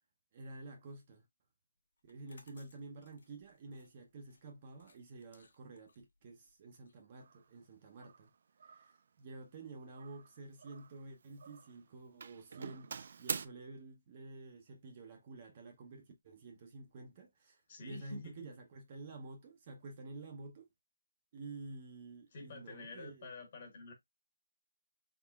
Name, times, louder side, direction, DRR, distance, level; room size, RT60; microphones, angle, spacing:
voice 1, 0.3-1.3 2.0-8.3 8.6-20.7 21.3-23.3, right 3 dB, 30° right, 0.8 m, -50 dB
sound 1, 2.0-7.7, left 3 dB, 60° left, 1.2 m, -67 dB
Doorbell, 7.2-7.4 8.0-8.3 8.6-9.0 10.0-11.0 11.3-11.8 12.2-13.5, right 6 dB, 45° right, 0.3 m, -44 dB
voice 2, 17.7-18.5 22.3-23.9, left 2 dB, 35° left, 1.4 m, -48 dB
3.7 x 3.7 x 2.3 m
hypercardioid pair, 170°, 0 cm